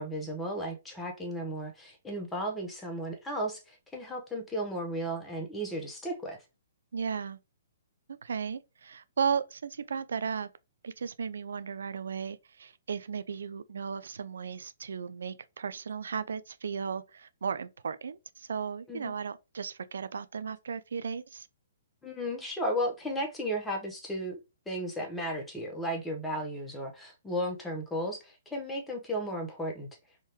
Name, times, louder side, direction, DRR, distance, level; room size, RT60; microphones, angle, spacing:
voice 1, 0.0-6.4 18.9-19.1 22.0-24.4 24.7-29.9, equal, 10° left, 1.0 m, -34 dB
voice 2, 6.9-7.4 8.2-10.5 10.8-21.5, right 6 dB, 75° right, 0.3 m, -35 dB
3.6 x 2.6 x 2.9 m
hypercardioid pair, 140°, 0 cm